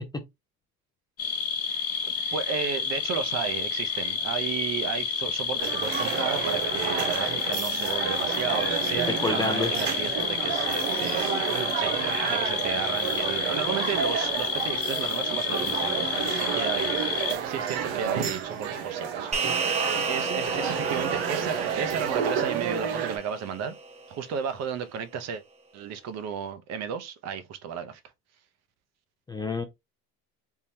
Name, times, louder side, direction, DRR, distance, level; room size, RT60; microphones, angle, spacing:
sound 1, 1.2-17.3, left 6 dB, 45° left, 1.0 m, -30 dB
voice 1, 2.3-11.3 11.7-23.8 24.1-25.4 25.7-28.0, right 7 dB, 50° right, 0.7 m, -34 dB
sound 2, 5.6-23.2, right 8 dB, 90° right, 0.9 m, -30 dB
voice 2, 9.2-9.7 29.3-29.6, left 4 dB, 10° left, 0.4 m, -29 dB
sound 3, 19.3-24.0, right 4 dB, 20° right, 0.9 m, -32 dB
3.7 x 2.9 x 2.7 m
cardioid pair, 130°, 35 cm